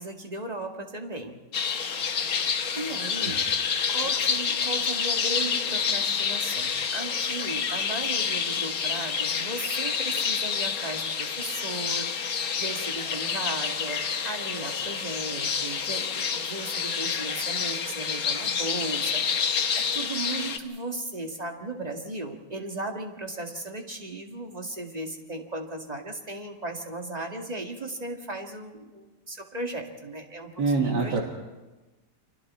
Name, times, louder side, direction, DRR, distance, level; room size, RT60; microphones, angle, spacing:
voice 1, 0.0-1.3 1.7-2.1 2.8-3.5 3.9-19.6 19.9-30.5 30.8-31.2, right 2 dB, 25° right, 3 dB, 2.0 m, -36 dB
sound 1, 1.5-20.6, left 6 dB, 60° left, 1.5 m, -28 dB
voice 2, 30.6-31.2, right 4 dB, 85° right, 1 dB, 2.4 m, -25 dB
29.5 x 24.0 x 4.3 m, 1.1 s
omnidirectional pair, 1.8 m